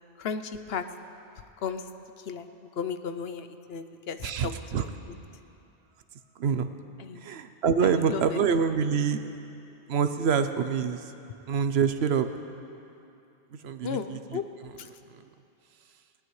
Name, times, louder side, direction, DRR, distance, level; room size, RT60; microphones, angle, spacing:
voice 1, 0.2-0.8 1.6-1.8 2.3-2.5 2.8-4.5 4.8-4.9 7.0-7.2 7.8-8.4 13.8-14.4 14.8-14.9, left 6 dB, 65° left, 9 dB, 0.9 m, -34 dB
voice 2, 4.2-4.8 6.4-6.7 7.2-9.2 9.9-11.1 11.5-12.3 13.5-14.7 15.1-15.2, right 6 dB, 70° right, 9 dB, 0.9 m, -26 dB
19.0 x 18.5 x 3.2 m, 2.7 s
omnidirectional pair, 1.2 m